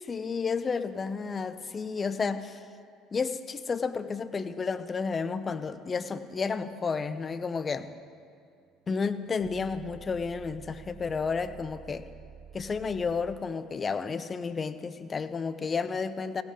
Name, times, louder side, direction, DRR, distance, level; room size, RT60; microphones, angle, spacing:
voice 1, 0.0-2.6 3.1-7.9 8.9-12.0 12.5-16.4, left 5 dB, 35° left, 12 dB, 0.6 m, -31 dB
sound 1, 7.9-13.4, right 7 dB, 45° right, 1.3 m, -51 dB
16.0 x 8.1 x 5.0 m, 2.3 s
hypercardioid pair, 65°, 0 cm